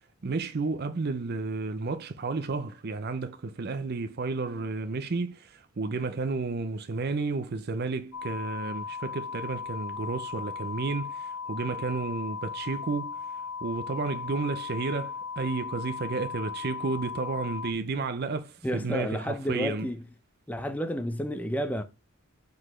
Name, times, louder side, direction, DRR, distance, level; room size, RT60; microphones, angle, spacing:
voice 1, 0.2-13.2 13.6-19.9, right 3 dB, 50° right, 0.5 m, -32 dB
sound 1, 8.1-17.7, left 5 dB, 85° left, 0.7 m, -37 dB
voice 2, 18.6-20.1 20.5-21.8, equal, 5° left, 0.6 m, -31 dB
5.0 x 4.0 x 5.5 m
head